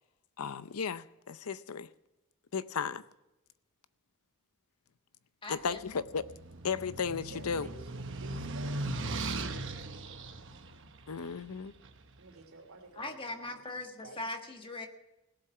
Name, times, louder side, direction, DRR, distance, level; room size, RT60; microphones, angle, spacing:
voice 1, 0.4-1.9 2.5-3.0 5.5-6.2 6.6-7.7 11.1-11.7, left 6 dB, 85° left, 15 dB, 0.6 m, -35 dB
voice 2, 5.4-6.0 13.0-14.9, left 2 dB, 25° left, 5 dB, 1.4 m, -40 dB
sound 1, 5.7-12.0, right 2 dB, 60° right, 1.1 m, -39 dB
voice 3, 7.3-10.0 12.2-14.3, right 2 dB, 75° right, 3 dB, 2.9 m, -52 dB
17.5 x 7.6 x 6.8 m, 0.95 s
head